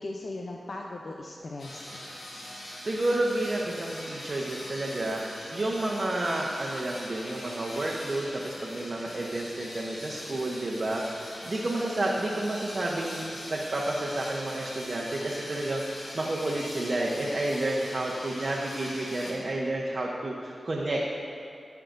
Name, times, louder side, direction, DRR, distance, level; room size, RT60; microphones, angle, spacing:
voice 1, 0.0-2.0, left 2 dB, 65° left, 0 dB, 0.6 m, -38 dB
sound 1, 1.6-19.3, left 1 dB, 85° left, 1.7 m, -42 dB
voice 2, 2.9-21.2, right 1 dB, 55° right, -4 dB, 1.0 m, -30 dB
15.0 x 5.8 x 2.6 m, 2.4 s
cardioid pair, 45°, 0 cm